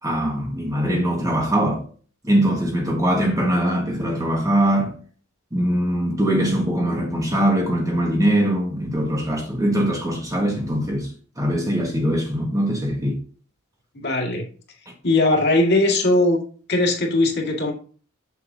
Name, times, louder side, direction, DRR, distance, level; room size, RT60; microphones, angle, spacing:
voice 1, 0.0-1.8 2.2-4.9 5.5-11.1 11.4-13.1, right 1 dB, 15° right, 1.5 m, -22 dB
voice 2, 13.9-14.4 15.0-16.4 16.7-17.7, left 2 dB, 55° left, 1.7 m, -19 dB
6.9 x 6.8 x 2.7 m
head